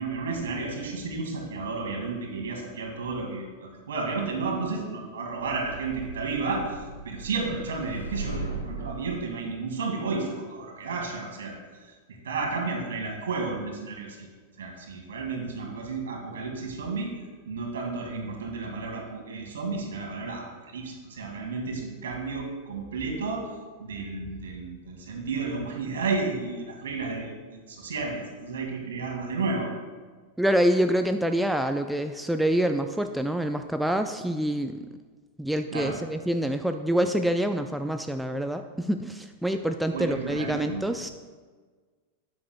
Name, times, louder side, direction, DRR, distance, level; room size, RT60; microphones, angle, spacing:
voice 1, 0.0-14.3 14.6-17.1 17.4-23.5 23.8-29.7 35.7-36.0 39.9-40.8, right 4 dB, 65° right, 1 dB, 2.3 m, -32 dB
sound 1, 5.6-9.1, right 2 dB, 85° left, 1.2 m, -37 dB
voice 2, 30.4-34.9 35.4-41.1, equal, ahead, 7 dB, 0.4 m, -26 dB
13.0 x 9.7 x 2.3 m, 1.5 s
figure-of-eight pair, 90°, 0 cm